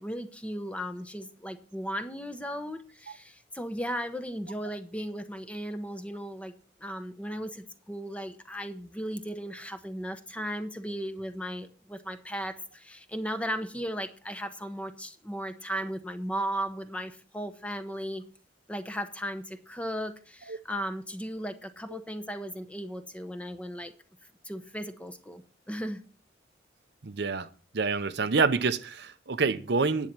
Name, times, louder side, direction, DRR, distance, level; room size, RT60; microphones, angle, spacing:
voice 1, 0.0-6.5 6.8-18.2 18.7-23.9 24.4-26.0, equal, 5° left, 0.8 m, -36 dB
voice 2, 27.0-27.5 27.7-30.1, right 4 dB, 60° right, 0.7 m, -27 dB
10.5 x 8.5 x 6.0 m
head